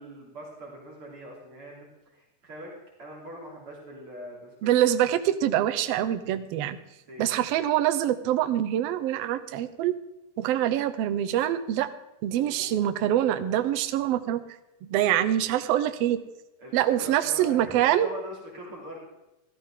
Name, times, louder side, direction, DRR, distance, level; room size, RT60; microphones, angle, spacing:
voice 1, 0.0-1.9 2.1-2.7 3.0-4.8 7.1-7.3 12.3-13.7 16.6-19.0, equal, 45° right, -4 dB, 3.8 m, -43 dB
voice 2, 4.6-6.8 7.2-9.9 10.4-11.9 12.2-14.4 14.8-16.2 16.7-18.1, right 12 dB, 75° right, 10 dB, 1.4 m, -25 dB
14.0 x 14.0 x 3.7 m, 0.95 s
omnidirectional pair, 3.6 m